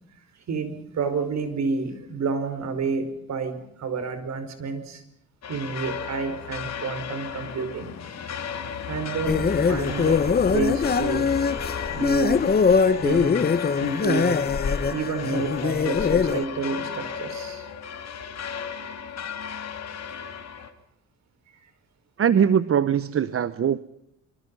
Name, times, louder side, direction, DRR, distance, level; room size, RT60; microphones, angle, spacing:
voice 1, 0.5-5.0 5.5-7.9 8.9-11.4 11.9-12.5 12.9-13.5 13.8-14.4 14.9-17.7, right 4 dB, 65° right, 10 dB, 5.1 m, -29 dB
sound 1, 5.4-20.7, left 7 dB, 60° left, 3.1 m, -34 dB
sound 2, 9.3-16.4, left 5 dB, 30° left, 1.1 m, -22 dB
voice 2, 22.2-23.8, right 8 dB, 50° right, 15 dB, 1.0 m, -21 dB
25.5 x 25.0 x 5.6 m, 0.77 s
cardioid pair, 90°, 30 cm